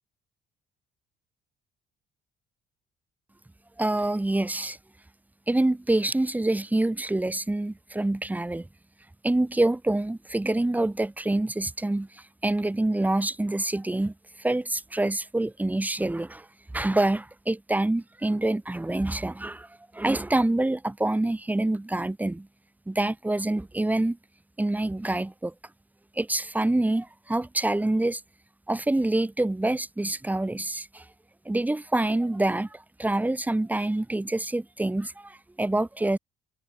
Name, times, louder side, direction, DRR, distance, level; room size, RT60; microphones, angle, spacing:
voice 1, 3.8-4.8 5.5-8.7 9.2-14.1 14.4-16.5 16.7-19.7 19.9-22.5 22.9-24.2 24.6-25.5 26.2-28.2 28.7-31.0 31.5-36.2, right 2 dB, 10° right, 4.0 m, -26 dB
cardioid pair, 110°, 17 cm